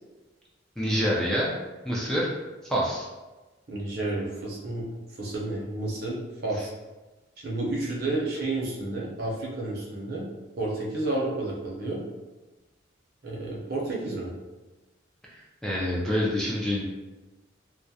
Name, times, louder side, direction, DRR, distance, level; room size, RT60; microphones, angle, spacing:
voice 1, 0.8-1.5 1.8-2.3 2.6-3.1 15.3-16.8, equal, 5° left, -5 dB, 0.3 m, -27 dB
voice 2, 3.7-4.8 5.2-6.7 7.4-10.2 10.6-12.0 13.2-14.3, right 2 dB, 55° right, -3 dB, 0.6 m, -31 dB
2.3 x 2.0 x 2.6 m, 1.2 s
head